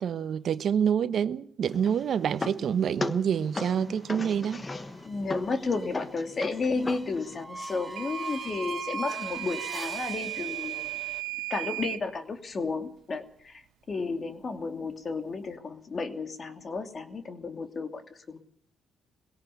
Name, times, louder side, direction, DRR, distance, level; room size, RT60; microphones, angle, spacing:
voice 1, 0.0-4.6, right 8 dB, 60° right, 1.1 m, -27 dB
sound 1, 1.6-7.4, left 2 dB, 25° left, 1.3 m, -37 dB
sound 2, 3.5-11.2, right 2 dB, 5° right, 5.4 m, -42 dB
voice 2, 5.0-10.9 11.5-13.6 13.9-18.0 18.3-18.4, left 4 dB, 40° left, 2.7 m, -32 dB
Microwave oven / Alarm, 8.0-12.0, right 23 dB, 85° right, 1.2 m, -36 dB
21.0 x 17.5 x 7.0 m
cardioid pair, 90°, 0 cm